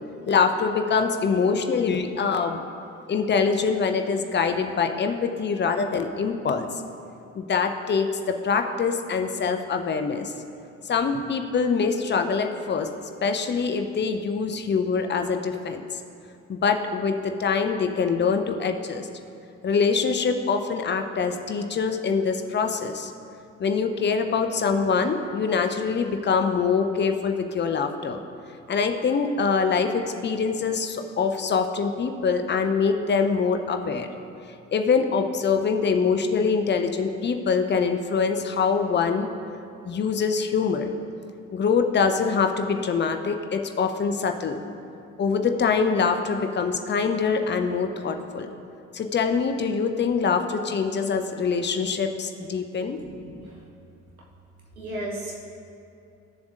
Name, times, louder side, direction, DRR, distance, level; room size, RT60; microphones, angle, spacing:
voice 1, 0.3-2.6 3.1-6.7 7.3-10.3 10.9-12.9 13.2-15.9 16.5-19.1 19.6-23.1 23.6-28.2 28.7-29.9 30.2-34.1 34.7-39.3 39.9-40.9 41.5-44.6 45.2-48.5 48.9-53.0, left 5 dB, 25° left, 6 dB, 0.6 m, -24 dB
voice 2, 53.0-53.5 54.8-55.3, right 1 dB, 90° right, -3 dB, 1.0 m, -34 dB
13.0 x 7.0 x 2.5 m, 2.6 s
figure-of-eight pair, 45°, 41 cm